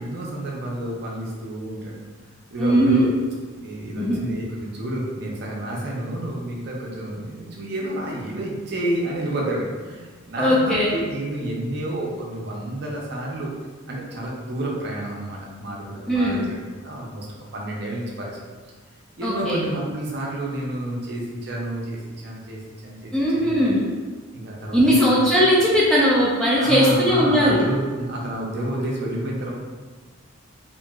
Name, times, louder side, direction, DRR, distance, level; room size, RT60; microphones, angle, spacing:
voice 1, 0.0-2.0 2.5-3.1 3.6-13.5 13.9-17.3 17.5-18.3 19.2-23.7 24.3-25.1 26.5-29.5, right 1 dB, 50° right, -2 dB, 0.5 m, -29 dB
voice 2, 2.6-3.1 4.0-4.2 10.4-10.9 16.1-16.4 19.2-19.6 23.1-23.8 24.7-27.6, equal, 5° left, -7 dB, 0.3 m, -19 dB
2.8 x 2.5 x 2.3 m, 1.4 s
head